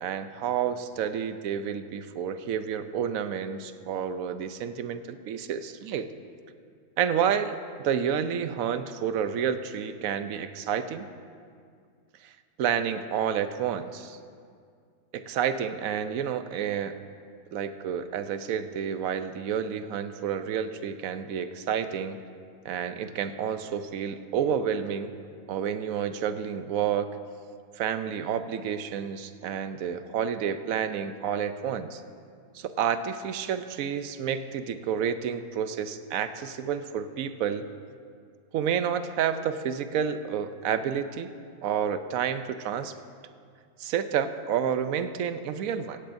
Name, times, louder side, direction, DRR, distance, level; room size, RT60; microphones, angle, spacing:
voice 1, 0.0-6.1 7.0-11.1 12.2-12.3 12.6-14.2 15.1-17.0 17.5-22.2 22.6-25.1 25.5-27.1 27.8-32.0 32.5-37.7 38.5-41.3 41.6-42.9 43.8-46.0, right 8 dB, 85° right, 11 dB, 1.1 m, -30 dB
16.5 x 15.0 x 2.6 m, 2.2 s
omnidirectional pair, 1.4 m